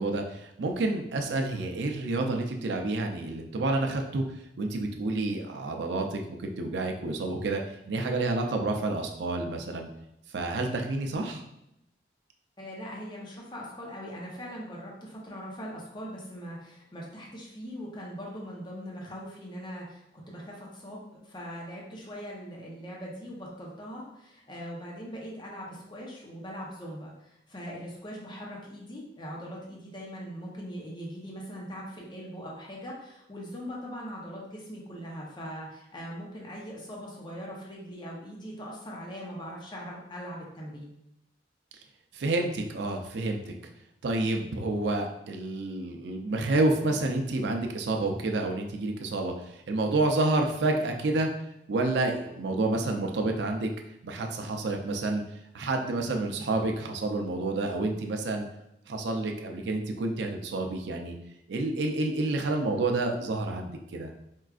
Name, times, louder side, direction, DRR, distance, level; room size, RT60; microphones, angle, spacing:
voice 1, 0.0-4.2 4.6-9.9 10.3-11.4 42.1-43.5 44.0-51.3 51.7-53.7 54.0-55.2 55.5-58.5 58.9-61.1 61.5-64.1, right 2 dB, 85° right, 3 dB, 0.5 m, -29 dB
voice 2, 12.6-40.9, equal, 25° left, -3 dB, 0.7 m, -41 dB
4.5 x 2.4 x 2.4 m, 0.83 s
head